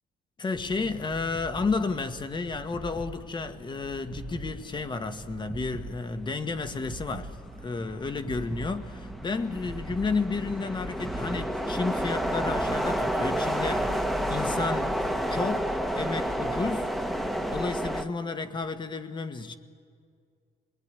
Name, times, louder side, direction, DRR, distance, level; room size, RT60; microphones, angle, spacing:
voice 1, 0.4-16.9 17.5-19.6, left 4 dB, 25° left, 1.5 m, -32 dB
sound 1, 0.5-13.9, right 3 dB, 25° right, 0.9 m, -44 dB
sound 2, 3.1-3.3 3.7-18.1, equal, ahead, 1.2 m, -31 dB
25.0 x 20.0 x 9.9 m
cardioid pair, 110°, 17 cm